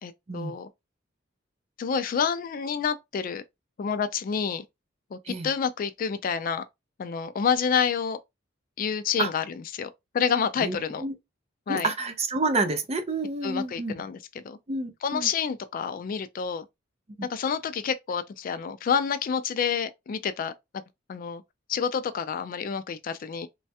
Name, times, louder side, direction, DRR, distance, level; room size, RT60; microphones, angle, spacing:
voice 1, 0.0-0.7 1.8-3.4 3.8-4.6 5.1-6.6 7.0-8.2 8.8-9.9 10.1-11.1 11.7-11.9 13.4-14.6 15.0-16.7 17.2-20.5 21.1-21.4 21.7-23.5, left 6 dB, 45° left, 0.3 m, -28 dB
voice 2, 10.6-11.1 11.7-13.9 14.7-15.3 17.2-17.3, right 2 dB, 35° right, 0.5 m, -29 dB
3.1 x 2.2 x 2.7 m
head